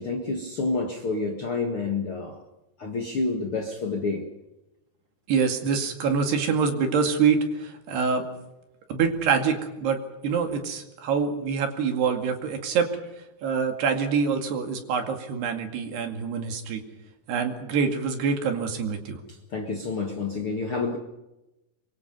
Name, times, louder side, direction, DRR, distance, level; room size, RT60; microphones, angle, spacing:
voice 1, 0.0-2.4 2.8-4.3 19.3-21.0, left 3 dB, 65° left, 3 dB, 1.3 m, -29 dB
voice 2, 5.3-8.3 8.9-12.9 13.4-16.8 17.3-19.2, right 6 dB, 60° right, 5 dB, 4.1 m, -25 dB
25.0 x 24.0 x 5.5 m, 0.97 s
omnidirectional pair, 5.5 m